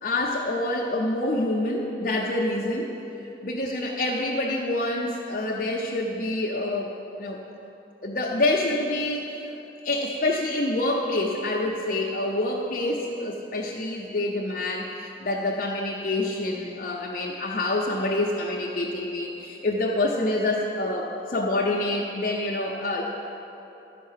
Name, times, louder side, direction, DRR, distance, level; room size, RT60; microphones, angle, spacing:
voice 1, 0.0-2.9 3.4-6.9 7.2-7.4 8.0-9.5 9.8-23.0, left 2 dB, 45° left, -3 dB, 0.7 m, -27 dB
12.0 x 5.6 x 7.3 m, 3.0 s
head